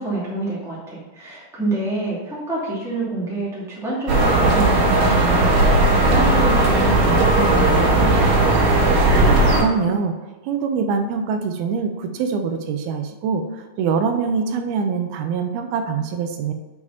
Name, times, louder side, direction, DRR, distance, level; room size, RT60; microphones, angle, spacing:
voice 1, 0.0-8.6, right 2 dB, ahead, -7 dB, 1.6 m, -27 dB
sound 1, 4.1-9.6, right 2 dB, 70° right, 3.0 m, -16 dB
voice 2, 9.5-10.1 10.5-16.5, right 5 dB, 85° right, 6 dB, 2.6 m, -24 dB
7.0 x 4.8 x 5.6 m, 1.2 s
omnidirectional pair, 4.3 m